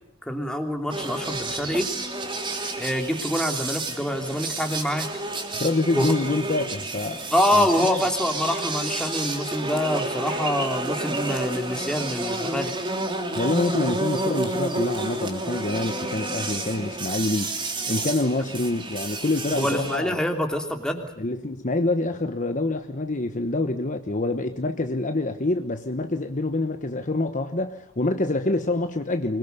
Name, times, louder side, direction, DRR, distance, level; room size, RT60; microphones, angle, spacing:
voice 1, 0.3-1.9 2.8-5.1 6.0-6.1 7.3-12.7 19.5-21.1, left 1 dB, 5° left, 3.0 m, -25 dB
sound 1, 0.9-20.0, right 2 dB, 25° right, 3.4 m, -30 dB
voice 2, 5.5-8.0 13.3-20.1 21.2-29.4, left 2 dB, 40° left, 1.1 m, -26 dB
25.0 x 21.5 x 6.8 m
head